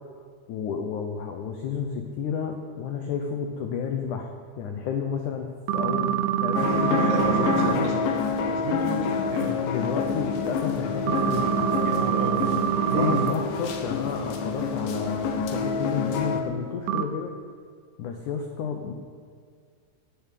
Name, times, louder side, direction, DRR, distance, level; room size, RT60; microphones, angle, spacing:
voice 1, 0.5-5.5 5.7-7.7 9.7-11.7 12.9-17.3 18.0-18.9, left 6 dB, 90° left, 4 dB, 1.7 m, -31 dB
sound 1, 5.7-7.7 11.1-13.3 16.9-17.0, right 11 dB, 80° right, 2.9 m, -25 dB
sound 2, 6.5-16.4, left 5 dB, 65° left, 2.3 m, -28 dB
voice 2, 7.0-8.1 8.4-9.6 11.8-12.6 12.8-13.3, right 2 dB, 55° right, 2 dB, 3.2 m, -31 dB
18.5 x 7.1 x 8.4 m, 2.1 s
omnidirectional pair, 5.0 m